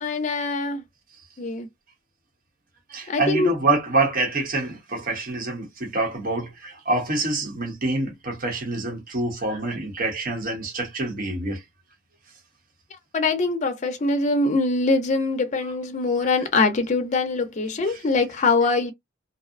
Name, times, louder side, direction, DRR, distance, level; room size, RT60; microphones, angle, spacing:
voice 1, 0.0-0.8 1.4-1.7 3.1-3.5 13.1-18.9, left 3 dB, 35° left, 0.5 m, -23 dB
voice 2, 2.9-11.6 17.9-18.0, right 2 dB, 45° right, 0.9 m, -26 dB
2.6 x 2.0 x 2.4 m
head